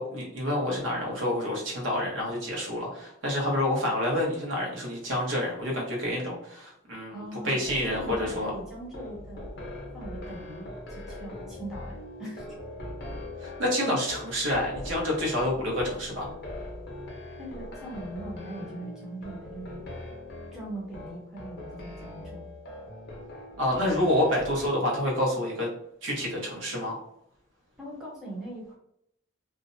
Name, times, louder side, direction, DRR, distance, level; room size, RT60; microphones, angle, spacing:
voice 1, 0.0-8.5 13.4-16.3 23.6-25.7 26.0-27.0, left 1 dB, 65° right, -2 dB, 0.9 m, -28 dB
voice 2, 7.1-9.4 9.9-12.5 17.4-19.8 20.5-22.5 27.8-28.8, right 1 dB, ahead, -5 dB, 0.6 m, -40 dB
sound 1, 7.6-24.7, left 1 dB, 50° left, 0.7 m, -41 dB
2.5 x 2.1 x 2.6 m, 0.73 s
head